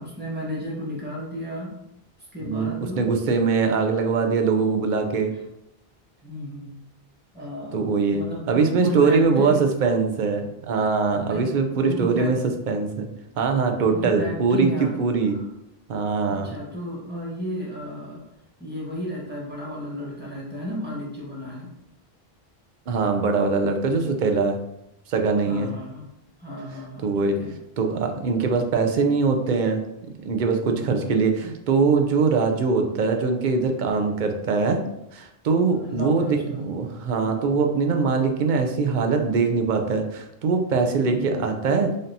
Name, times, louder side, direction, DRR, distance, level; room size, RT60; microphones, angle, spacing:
voice 1, 0.0-1.8 2.2-3.0 3.8-3.9 6.2-6.7 7.3-7.8 8.1-9.6 11.2-12.3 13.9-15.4 16.3-18.2 18.6-21.7 25.4-26.1 26.4-27.5 30.7-31.2 35.7-36.6 41.0-41.3, equal, 10° right, -5 dB, 1.2 m, -33 dB
voice 2, 2.4-5.3 7.7-12.4 12.7-13.1 13.4-15.4 15.9-16.5 22.9-24.6 25.1-25.7 27.0-27.4 27.8-29.8 30.2-34.8 35.1-41.9, right 4 dB, 55° right, 4 dB, 0.6 m, -22 dB
5.1 x 2.6 x 2.7 m, 0.83 s
omnidirectional pair, 1.0 m